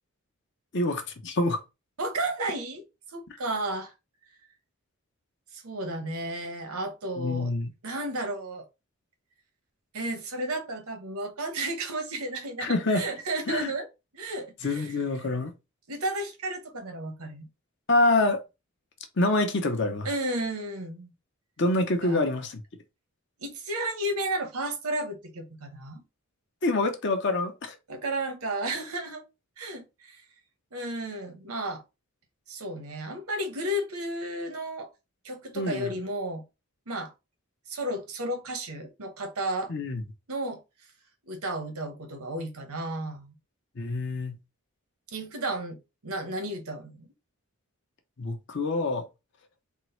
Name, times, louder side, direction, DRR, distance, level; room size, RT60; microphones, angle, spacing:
voice 1, 0.7-1.6 7.2-7.7 12.6-13.0 13.5-13.7 14.6-15.5 17.9-18.4 19.2-20.1 21.6-22.6 26.6-27.7 35.5-35.9 39.7-40.0 43.8-44.4 48.2-49.1, left 2 dB, 55° left, 0.8 m, -26 dB
voice 2, 2.0-2.8 3.1-3.9 5.5-7.5 7.8-8.6 9.9-13.9 14.1-14.9 15.9-17.5 20.0-21.1 22.0-22.2 23.4-26.0 27.9-29.2 29.6-30.2 30.7-31.8 32.5-34.9 35.2-36.4 36.9-37.1 37.7-39.7 40.3-40.6 41.3-43.3 45.1-47.1, right 1 dB, 80° right, 0.9 m, -33 dB
3.6 x 2.1 x 4.3 m
head